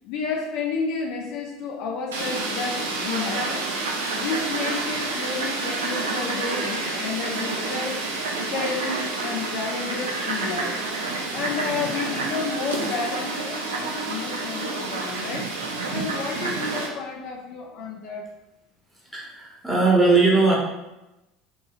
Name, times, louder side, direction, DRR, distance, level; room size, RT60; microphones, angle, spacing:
voice 1, 0.0-3.7 4.1-8.0 8.5-10.8 11.3-15.5 15.9-18.2, left 4 dB, 60° left, 0 dB, 0.4 m, -31 dB
Fowl, 2.1-16.9, right 3 dB, 80° right, 0.4 m, -29 dB
voice 2, 19.1-20.6, right 3 dB, 5° right, -5 dB, 1.0 m, -19 dB
2.7 x 2.7 x 2.4 m, 0.98 s
hypercardioid pair, 70°, 0 cm